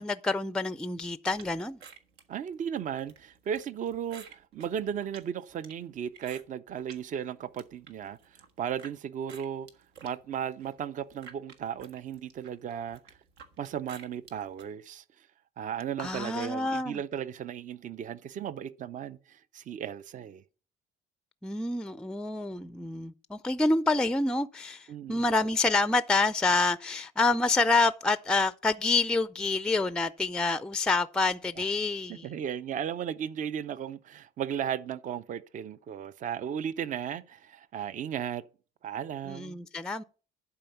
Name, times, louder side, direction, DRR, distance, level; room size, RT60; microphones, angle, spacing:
voice 1, 0.0-1.8 16.0-17.0 21.4-32.3 39.3-40.0, left 3 dB, 5° left, 0.4 m, -27 dB
sound 1, 1.4-7.0 7.4-8.9 9.3-14.7, right 6 dB, 85° right, 1.4 m, -52 dB
voice 2, 2.3-9.7 10.0-13.0 13.6-15.0 15.6-20.4 24.9-25.3 31.6-31.7 32.1-38.4 38.8-39.6, right 8 dB, 50° right, 0.6 m, -35 dB
11.5 x 4.6 x 6.9 m
cardioid pair, 110°, 17 cm